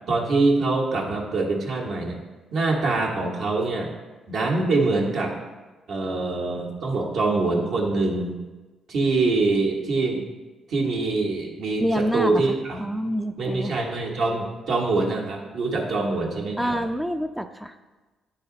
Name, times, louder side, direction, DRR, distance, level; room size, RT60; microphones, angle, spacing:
voice 1, 0.1-2.2 2.5-3.9 4.3-5.4 5.9-8.4 8.9-10.2 10.7-12.8 13.4-16.8, right 3 dB, 70° right, -1 dB, 1.4 m, -24 dB
voice 2, 11.8-13.7 16.6-17.7, equal, ahead, 7 dB, 0.3 m, -27 dB
9.2 x 4.1 x 3.8 m, 1.2 s
cardioid pair, 90°, 0 cm